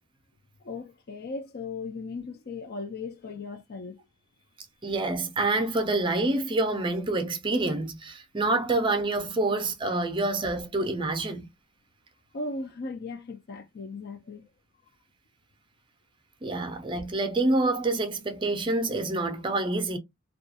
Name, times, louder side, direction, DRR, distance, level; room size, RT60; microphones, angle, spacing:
voice 1, 0.6-4.0 12.3-14.5, left 3 dB, 50° left, 0.4 m, -37 dB
voice 2, 4.8-11.5 16.4-20.0, right 2 dB, 25° right, 0.5 m, -27 dB
2.3 x 2.3 x 2.7 m
head